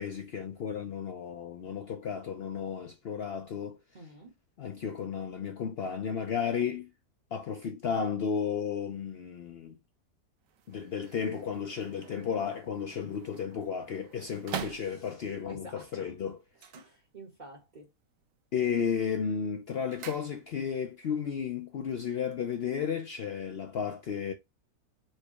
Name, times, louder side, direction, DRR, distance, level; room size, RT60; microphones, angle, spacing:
voice 1, 0.0-3.8 4.6-6.9 7.3-9.7 10.7-16.4 18.5-24.3, left 7 dB, 60° left, 0.6 m, -33 dB
voice 2, 3.9-4.4 14.6-16.1 16.7-17.9, right 1 dB, 35° right, 1.0 m, -50 dB
sound 1, 10.4-15.4 16.5-17.6 17.9-18.4 18.8-20.8 21.1-21.2, right 8 dB, 65° right, 1.0 m, -45 dB
4.6 x 2.2 x 4.5 m
omnidirectional pair, 1.6 m